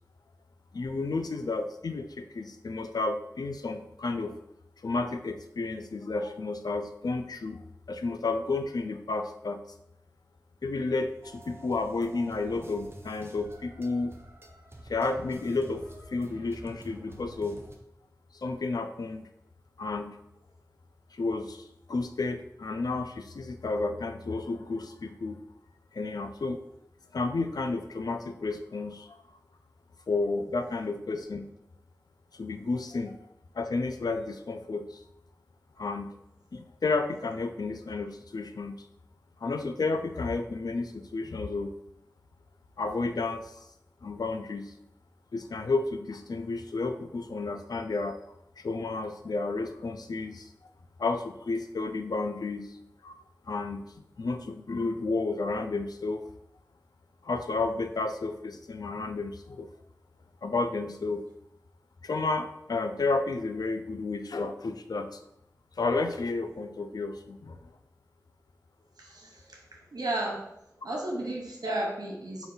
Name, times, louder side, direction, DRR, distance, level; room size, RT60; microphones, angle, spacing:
voice 1, 0.7-4.4 4.8-9.6 10.6-14.1 14.9-15.8 16.1-17.6 18.3-19.3 19.8-20.2 21.1-25.4 25.9-26.6 27.1-29.2 30.1-31.4 32.3-33.2 33.5-35.0 35.8-36.1 36.5-38.7 39.4-41.7 42.8-43.6 44.0-44.7 45.3-48.2 48.6-50.5 51.0-52.8 53.0-53.2 53.5-53.8 54.2-56.2 57.2-59.7 60.4-61.2 62.0-65.2 65.8-67.7, left 3 dB, 80° left, 7 dB, 0.3 m, -31 dB
sound 1, 11.2-17.8, right 1 dB, 35° right, 0.6 m, -49 dB
voice 2, 69.0-69.6 69.9-70.5 70.8-72.5, right 1 dB, 80° right, -2 dB, 0.9 m, -33 dB
3.9 x 2.3 x 3.8 m, 0.79 s
wide cardioid pair, 50°, 7 cm